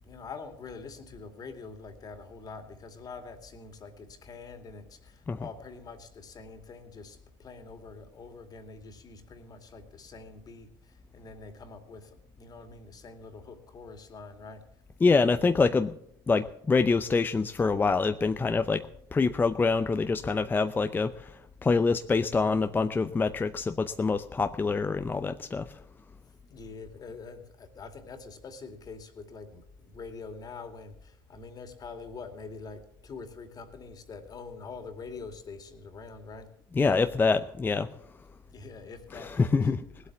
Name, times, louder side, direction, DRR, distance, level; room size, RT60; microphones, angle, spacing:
voice 1, 0.0-14.6 26.5-36.5 38.5-39.7, left 4 dB, 35° left, 7 dB, 2.4 m, -45 dB
voice 2, 15.0-15.9 16.3-25.8 36.7-37.9 39.1-39.8, left 4 dB, 15° left, 9 dB, 0.6 m, -26 dB
18.0 x 8.1 x 7.2 m, 0.74 s
hypercardioid pair, 90°, 12 cm